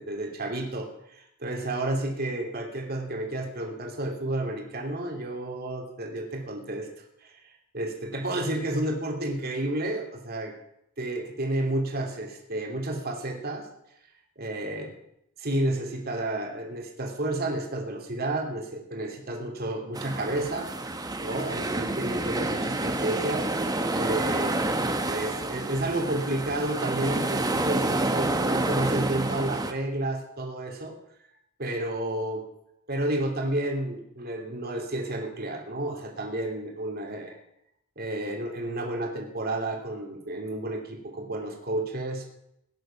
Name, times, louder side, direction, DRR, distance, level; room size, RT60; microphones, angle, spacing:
voice 1, 0.0-6.9 7.2-7.3 7.7-10.5 11.0-13.7 14.4-14.9 15.4-20.7 21.2-24.6 25.0-30.9 31.6-32.4 32.9-37.4 38.0-42.2, right 1 dB, 45° right, 2 dB, 2.9 m, -31 dB
sound 1, 19.9-29.7, right 2 dB, 15° right, 1.2 m, -28 dB
17.5 x 10.5 x 5.9 m, 0.76 s
head